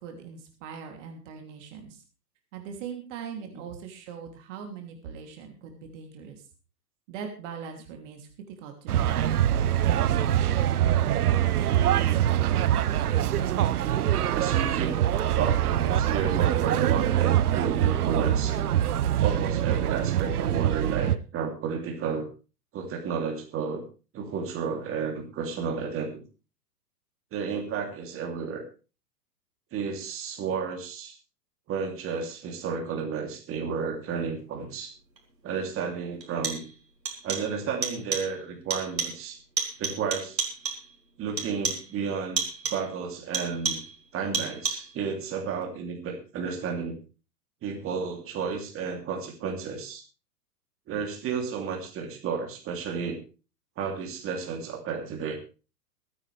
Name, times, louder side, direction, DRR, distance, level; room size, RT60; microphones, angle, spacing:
voice 1, 0.0-2.0 2.5-6.4 7.1-9.2, right 6 dB, 45° right, 4 dB, 3.1 m, -41 dB
sound 1, 8.9-21.2, right 11 dB, 65° right, 1.0 m, -24 dB
voice 2, 14.3-15.0 15.3-18.6 19.2-22.2 22.7-23.8 24.1-26.2 27.3-28.6 29.7-31.1 31.7-34.9 35.4-36.6 37.2-39.4 39.8-40.4 41.2-42.4 42.7-43.8 44.1-47.0 47.6-50.0 50.9-53.2 53.8-55.4, right 6 dB, 25° right, 1 dB, 3.1 m, -32 dB
sound 2, 35.2-35.3 36.2-36.8 37.1-37.6 37.8-38.4 38.7-39.3 39.6-40.9 41.4-42.0 42.4-42.9 43.3-44.0 44.3-45.0, right 4 dB, 85° right, 3.9 m, -32 dB
23.0 x 9.4 x 3.4 m, 0.35 s
figure-of-eight pair, 105°, 49 cm